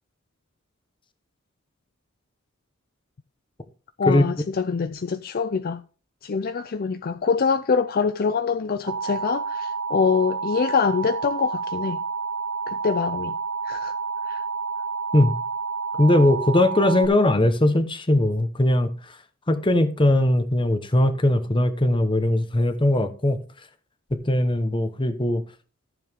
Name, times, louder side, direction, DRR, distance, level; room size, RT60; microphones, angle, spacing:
voice 1, 4.0-5.8 6.2-12.0 12.7-13.3 13.6-13.9 14.3-14.4, left 5 dB, 45° left, 0.4 m, -24 dB
Alarm, 8.9-17.1, right 4 dB, 80° right, 1.1 m, -29 dB
voice 2, 16.0-18.9 19.5-23.4 24.3-25.4, left 1 dB, 25° left, 1.0 m, -20 dB
14.0 x 7.1 x 3.5 m
head